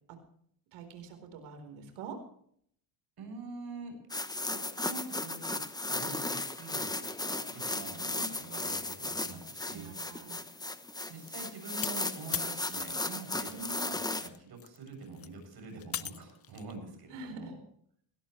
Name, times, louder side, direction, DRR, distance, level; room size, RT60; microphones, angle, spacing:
voice 1, 0.7-2.2 8.1-8.3 9.7-10.6 13.5-14.1 17.1-17.6, right 4 dB, 75° right, 6 dB, 4.4 m, -45 dB
voice 2, 3.2-4.0 4.4-5.6 5.9-9.9 11.1-13.5 13.9-17.6, right 3 dB, 50° right, 4 dB, 7.9 m, -45 dB
sound 1, 4.1-14.3, left 2 dB, 10° left, 1.1 m, -36 dB
sound 2, 11.3-13.9 14.2-16.7, left 10 dB, 30° left, 0.6 m, -41 dB
19.5 x 16.5 x 3.3 m, 0.64 s
cardioid pair, 100°, 49 cm